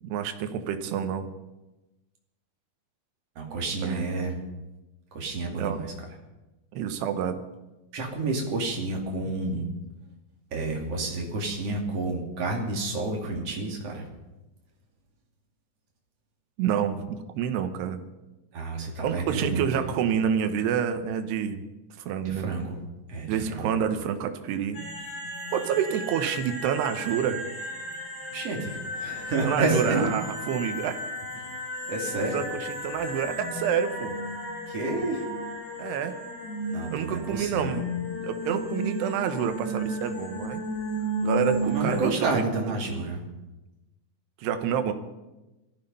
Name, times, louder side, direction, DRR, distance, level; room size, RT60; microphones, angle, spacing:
voice 1, 0.0-1.2 3.8-4.1 5.6-5.8 6.7-7.4 9.5-9.6 16.6-18.0 19.0-21.6 22.0-22.5 23.3-24.8 25.5-27.4 29.4-30.9 32.3-34.2 35.8-36.2 36.9-37.9 38.2-40.6 41.2-42.3 42.6-42.8 44.4-44.9, right 8 dB, 80° right, 8 dB, 3.2 m, -28 dB
voice 2, 3.3-4.4 5.1-5.9 7.9-9.7 10.5-14.1 18.5-19.9 22.2-22.8 23.1-23.7 28.3-30.1 31.9-32.4 34.7-35.3 36.7-37.8 41.6-43.2, right 3 dB, 40° right, 1 dB, 3.3 m, -30 dB
sound 1, 24.7-42.1, equal, 60° left, 8.5 m, -34 dB
18.5 x 14.0 x 5.5 m, 1.0 s
omnidirectional pair, 4.7 m